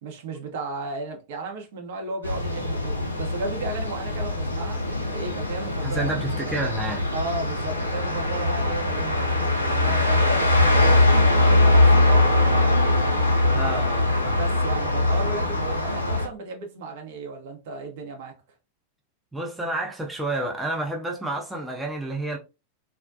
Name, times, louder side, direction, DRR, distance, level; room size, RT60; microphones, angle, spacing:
voice 1, 0.0-6.6 7.1-11.0 11.4-12.9 14.3-18.4, right 3 dB, 55° right, 0.7 m, -35 dB
sound 1, 2.2-16.3, left 2 dB, 85° left, 0.5 m, -22 dB
voice 2, 5.8-7.1 13.5-14.4 19.3-22.4, right 2 dB, 5° right, 0.5 m, -30 dB
2.4 x 2.1 x 2.5 m
figure-of-eight pair, 90°, 0 cm